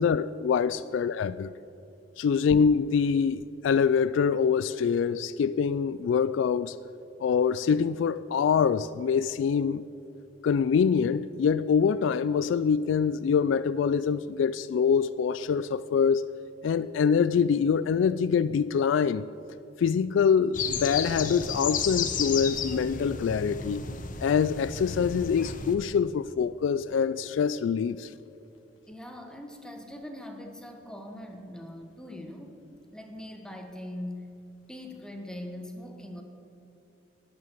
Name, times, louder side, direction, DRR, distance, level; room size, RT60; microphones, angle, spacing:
voice 1, 0.0-1.5 2.2-6.8 7.2-9.8 10.4-16.3 16.6-19.2 19.8-23.8 24.2-28.1, left 6 dB, 90° left, 0.3 m, -25 dB
sound 1, 20.5-25.7, left 6 dB, 45° left, 0.9 m, -33 dB
voice 2, 28.9-32.6 32.9-34.3 34.7-36.2, left 1 dB, 5° left, 1.1 m, -41 dB
10.5 x 9.5 x 7.5 m
head